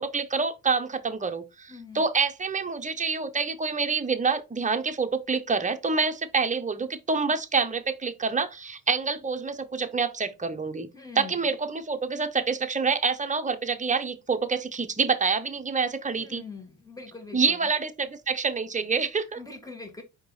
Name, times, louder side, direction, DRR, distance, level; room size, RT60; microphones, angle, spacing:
voice 1, 0.0-10.9 11.1-16.4 17.3-19.4, right 4 dB, 20° right, 0.8 m, -27 dB
voice 2, 1.7-2.1 10.9-11.3 16.2-17.7 19.4-20.0, left 4 dB, 10° left, 1.6 m, -42 dB
4.6 x 2.9 x 3.9 m
cardioid pair, 80°, 35 cm